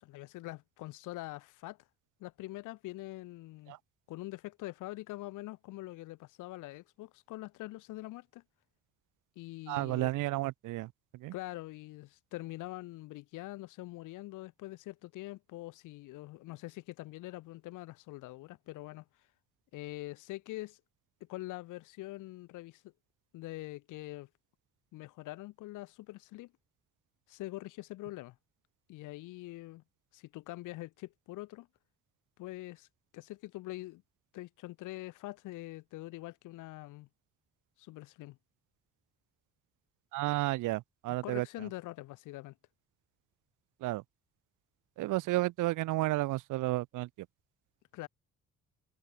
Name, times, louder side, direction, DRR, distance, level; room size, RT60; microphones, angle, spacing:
voice 1, 0.0-1.8 2.2-3.8 4.1-8.4 9.4-10.1 11.3-19.0 19.7-20.8 21.3-22.9 23.3-24.3 24.9-26.5 27.3-28.4 28.9-29.8 30.1-31.7 32.4-32.9 33.1-34.0 34.3-37.1 37.8-38.4 41.2-42.5 47.9-48.1, left 18 dB, 90° left, 0.8 m, -44 dB
voice 2, 9.7-11.3 40.1-41.7 43.8-44.0 45.0-47.3, right 18 dB, 90° right, 0.9 m, -32 dB
cardioid pair, 90°, 30 cm